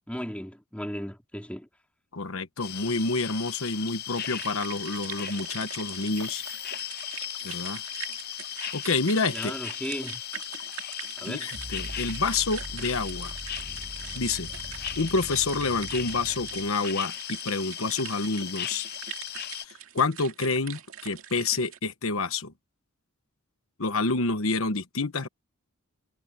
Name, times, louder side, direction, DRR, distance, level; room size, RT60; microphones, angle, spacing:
voice 1, 0.1-1.7 9.3-10.2 11.2-11.5, equal, 5° left, 3.3 m, -36 dB
voice 2, 2.1-6.4 7.4-7.8 8.7-9.5 11.3-13.3 14.1-14.5 15.0-18.9 19.6-22.5 23.8-25.3, left 3 dB, 80° left, 1.2 m, -28 dB
sound 1, 2.6-19.6, left 11 dB, 50° left, 0.6 m, -37 dB
sound 2, 4.2-21.8, right 9 dB, 80° right, 2.1 m, -43 dB
sound 3, 11.5-16.7, equal, 35° right, 7.3 m, -42 dB
head